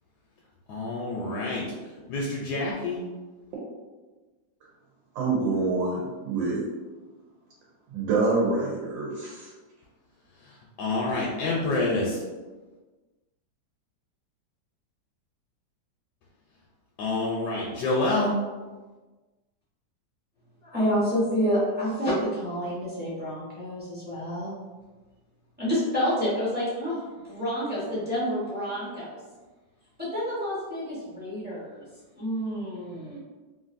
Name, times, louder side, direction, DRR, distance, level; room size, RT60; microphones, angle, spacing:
voice 1, 0.7-1.6 2.1-3.0 10.8-12.2 17.0-18.3, left 2 dB, 75° left, -4 dB, 1.0 m, -27 dB
voice 2, 5.1-6.6 7.9-9.5, right 3 dB, 90° right, -5 dB, 1.4 m, -26 dB
voice 3, 20.7-24.5 25.6-29.2 30.0-31.8 32.2-33.2, equal, 10° right, -10 dB, 0.5 m, -28 dB
3.1 x 2.5 x 2.5 m, 1.3 s
omnidirectional pair, 2.0 m